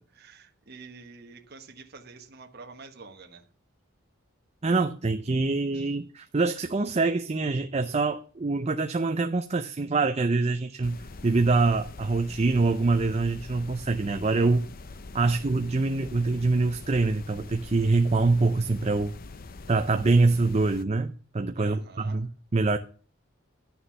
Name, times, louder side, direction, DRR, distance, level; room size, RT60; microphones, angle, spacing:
voice 1, 0.1-3.4 5.7-5.9 15.2-15.5 21.6-22.2, right 4 dB, 50° right, 1.2 m, -48 dB
voice 2, 4.6-14.7 15.1-19.1 19.7-22.3 22.5-22.8, right 3 dB, 30° right, 0.6 m, -25 dB
sound 1, 10.8-20.8, left 3 dB, 45° left, 0.6 m, -44 dB
11.0 x 6.9 x 5.6 m
head